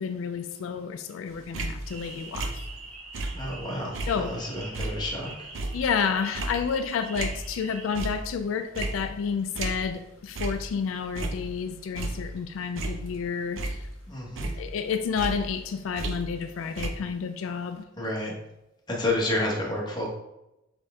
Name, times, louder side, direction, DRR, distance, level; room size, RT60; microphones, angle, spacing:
voice 1, 0.0-2.7 4.1-4.3 5.7-13.9 14.5-17.8, left 6 dB, 85° left, 8 dB, 0.3 m, -30 dB
sound 1, 1.3-3.6 3.9-7.6 7.9-8.4 8.7-10.1 10.3-10.7 11.0-12.4 12.8-14.1 14.4-16.5 16.8-16.9, right 2 dB, 75° right, 0.6 m, -34 dB
sound 2, 1.8-8.2, right 3 dB, 35° right, 0.6 m, -45 dB
voice 2, 3.3-5.5 14.1-14.5 18.0-18.3 18.9-20.1, left 1 dB, 20° left, -3 dB, 1.1 m, -30 dB
4.2 x 3.4 x 3.6 m, 0.91 s
head